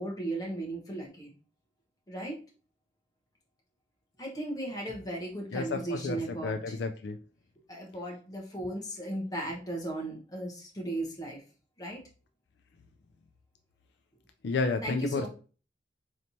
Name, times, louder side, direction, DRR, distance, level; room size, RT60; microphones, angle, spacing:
voice 1, 0.0-1.3 2.1-2.4 4.2-6.8 7.7-11.4 11.8-12.0 14.8-15.3, right 1 dB, 20° left, -1 dB, 1.0 m, -36 dB
voice 2, 5.5-7.2 14.4-15.3, left 4 dB, 65° left, 5 dB, 0.4 m, -31 dB
4.2 x 3.2 x 2.7 m, 0.37 s
head